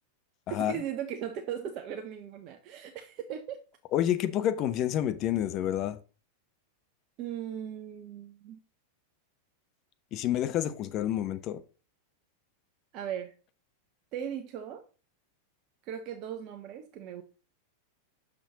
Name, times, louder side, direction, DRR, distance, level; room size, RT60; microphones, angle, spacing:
voice 1, 0.5-3.6 7.2-8.6 12.9-13.3 14.1-14.8 15.8-17.2, right 9 dB, 40° right, 0.7 m, -38 dB
voice 2, 3.9-6.0 10.1-11.6, left 11 dB, 35° left, 0.7 m, -28 dB
6.2 x 6.0 x 3.9 m
figure-of-eight pair, 90°, 0 cm